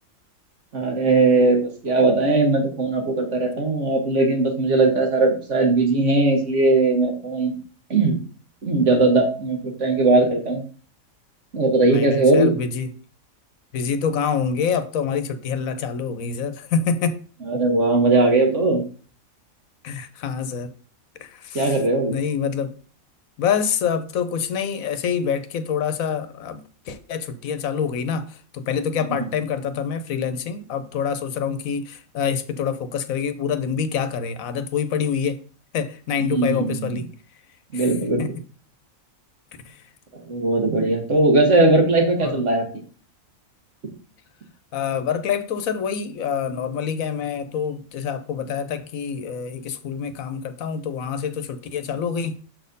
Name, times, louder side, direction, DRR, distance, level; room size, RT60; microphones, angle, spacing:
voice 1, 0.7-7.5 7.9-8.2 8.6-10.6 11.5-12.5 17.4-18.8 21.5-22.2 29.0-29.3 36.2-37.0 37.7-38.4 40.3-42.6 43.8-44.0, right 2 dB, 60° right, 1.9 m, -19 dB
voice 2, 11.9-12.9 13.7-17.2 19.8-20.7 21.2-21.8 22.1-22.8 23.4-26.6 26.9-35.4 35.7-37.1 37.7-37.8 38.2-38.3 39.7-39.8 42.2-42.4 44.7-52.4, left 7 dB, 80° left, 1.2 m, -26 dB
6.4 x 4.2 x 5.3 m
omnidirectional pair, 1.4 m